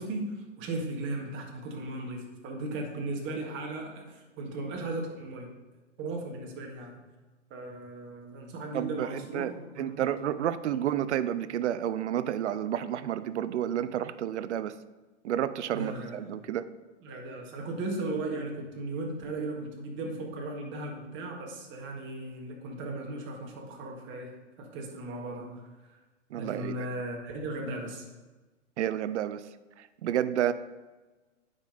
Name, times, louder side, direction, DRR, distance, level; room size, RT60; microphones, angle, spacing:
voice 1, 0.0-5.5 6.0-7.0 7.5-10.1 10.4-10.5 15.7-16.2 17.0-25.6 26.4-28.1, right 2 dB, 30° right, 1 dB, 1.7 m, -37 dB
voice 2, 8.7-9.5 9.8-14.8 15.2-16.6 26.3-26.9 28.8-29.4 29.8-30.5, right 11 dB, 65° right, 15 dB, 0.6 m, -30 dB
9.6 x 5.3 x 3.9 m, 1.2 s
hypercardioid pair, 115°, 38 cm